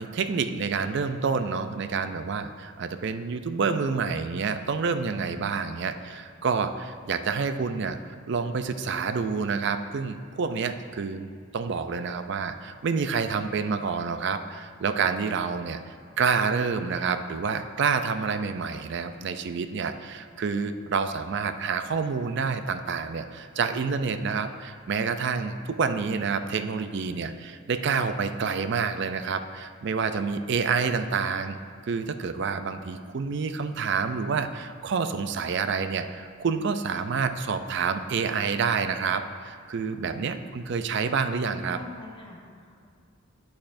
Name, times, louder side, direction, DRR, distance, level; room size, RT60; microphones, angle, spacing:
voice 1, 0.0-8.0 8.3-11.3 11.5-15.8 16.2-31.6 31.9-41.8, right 5 dB, 55° right, 9 dB, 0.4 m, -28 dB
voice 2, 41.4-42.9, left 2 dB, 25° left, -2 dB, 1.0 m, -46 dB
9.5 x 8.6 x 2.6 m, 2.2 s
head